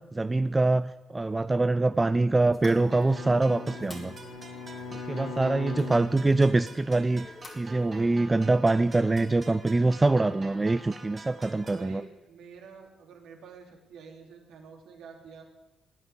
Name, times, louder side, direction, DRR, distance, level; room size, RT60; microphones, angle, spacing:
voice 1, 0.1-4.1 4.9-7.3 7.6-12.0, right 2 dB, 25° right, 13 dB, 0.6 m, -24 dB
Bowed string instrument, 2.5-6.9, left 3 dB, 90° left, 1.6 m, -40 dB
sound 1, 2.5-8.1, left 3 dB, 40° left, 4.1 m, -50 dB
sound 2, 2.9-11.9, right 3 dB, 40° right, 3.7 m, -47 dB
voice 2, 5.0-5.9 10.1-10.7 11.7-15.4, right 5 dB, 75° right, 2 dB, 3.3 m, -49 dB
17.0 x 9.6 x 8.6 m, 1.1 s
hypercardioid pair, 55°, 0 cm